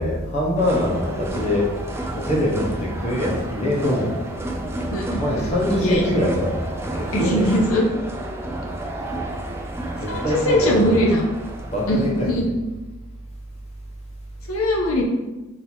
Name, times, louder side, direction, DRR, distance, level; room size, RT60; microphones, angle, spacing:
voice 1, 0.0-1.7 2.1-4.1 5.2-6.6 6.9-7.5 10.0-11.0 11.7-12.3, left 1 dB, 30° left, -3 dB, 1.0 m, -23 dB
sound 1, 0.6-12.4, right 1 dB, 10° right, 0.3 m, -31 dB
voice 2, 4.9-5.2 5.8-6.0 7.1-7.9 10.1-11.2 11.9-12.5 14.5-15.0, equal, 80° left, -1 dB, 0.7 m, -20 dB
4.1 x 2.8 x 4.4 m, 1.1 s
head